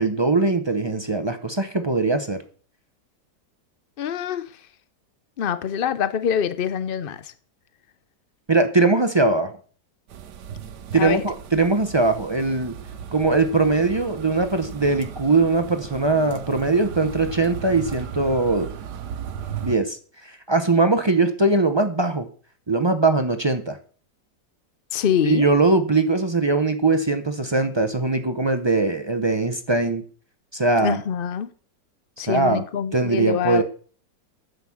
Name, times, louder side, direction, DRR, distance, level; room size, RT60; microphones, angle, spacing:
voice 1, 0.0-2.4 8.5-9.5 10.9-12.7 13.1-18.7 19.6-22.3 22.7-23.8 25.3-30.0 30.5-31.0 32.3-32.6 32.9-33.6, right 3 dB, 40° right, 0.4 m, -21 dB
voice 2, 4.0-4.6 5.4-7.3 10.9-11.2 24.9-25.5 30.8-31.5 32.2-33.6, left 8 dB, 80° left, 0.5 m, -25 dB
sound 1, 10.1-19.8, right 8 dB, 70° right, 1.4 m, -36 dB
9.7 x 6.9 x 7.1 m
omnidirectional pair, 1.9 m